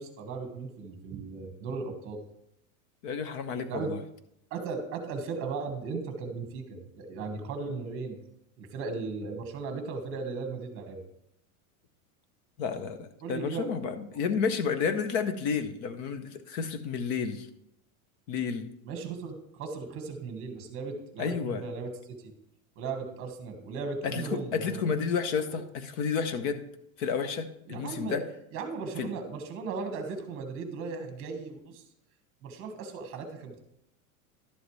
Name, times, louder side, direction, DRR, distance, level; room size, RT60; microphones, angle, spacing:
voice 1, 0.0-2.2 3.7-3.9 4.5-8.2 8.6-11.0 13.2-13.7 14.1-14.2 18.8-22.3 22.7-25.0 25.5-25.6 27.7-28.2 28.5-31.8 32.4-33.6, right 4 dB, 30° right, 5 dB, 1.5 m, -37 dB
voice 2, 3.0-4.0 12.6-17.5 18.3-18.7 21.2-21.6 24.0-26.6 27.0-28.2 29.0-29.1, left 6 dB, 40° left, 10 dB, 0.8 m, -31 dB
11.5 x 7.7 x 3.2 m, 0.79 s
supercardioid pair, 165°, 44 cm